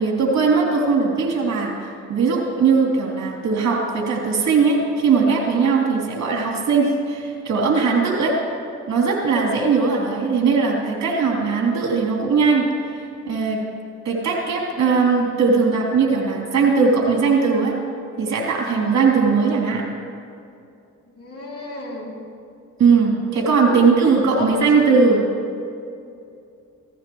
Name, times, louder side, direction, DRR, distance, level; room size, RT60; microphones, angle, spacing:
voice 1, 0.0-8.4 8.9-12.7 13.0-13.6 14.1-17.7 18.2-19.8 22.8-25.2, right 4 dB, 65° right, -1 dB, 3.3 m, -19 dB
voice 2, 21.1-22.2 23.6-23.9 24.3-24.7, left 3 dB, 50° left, -2 dB, 3.0 m, -33 dB
16.5 x 15.0 x 3.2 m, 2.5 s
cardioid pair, 90°, 30 cm